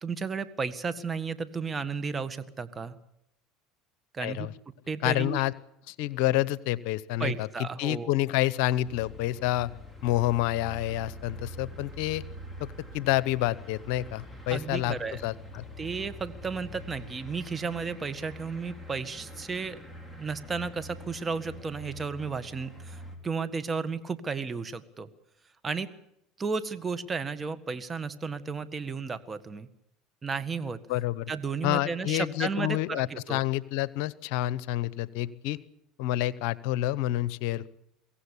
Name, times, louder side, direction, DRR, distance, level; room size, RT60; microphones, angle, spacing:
voice 1, 0.0-3.0 4.1-4.5 4.9-5.4 7.2-8.1 14.5-15.2 15.8-19.8 20.2-25.1 25.6-25.9 26.4-29.7 30.2-30.8 31.3-33.4, right 5 dB, 25° right, 12 dB, 1.6 m, -33 dB
voice 2, 4.2-4.5 5.0-5.5 5.9-7.5 7.8-9.7 10.0-12.2 12.6-15.0 15.2-15.7 30.9-31.3 31.6-35.6 36.0-37.7, left 15 dB, 70° left, 19 dB, 0.8 m, -28 dB
sound 1, 8.8-23.2, equal, 5° left, 4.8 m, -45 dB
23.5 x 17.0 x 8.4 m, 0.79 s
supercardioid pair, 95°, 0 cm